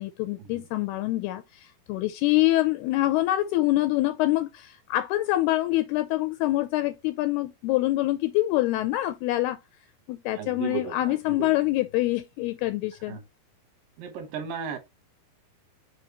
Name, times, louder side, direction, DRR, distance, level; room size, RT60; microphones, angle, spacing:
voice 1, 0.0-9.6 10.1-13.2, left 17 dB, 85° left, 2.4 m, -25 dB
voice 2, 10.3-11.6 13.1-13.2 14.0-14.8, right 7 dB, 65° right, 2.4 m, -35 dB
6.3 x 5.5 x 3.0 m
omnidirectional pair, 5.0 m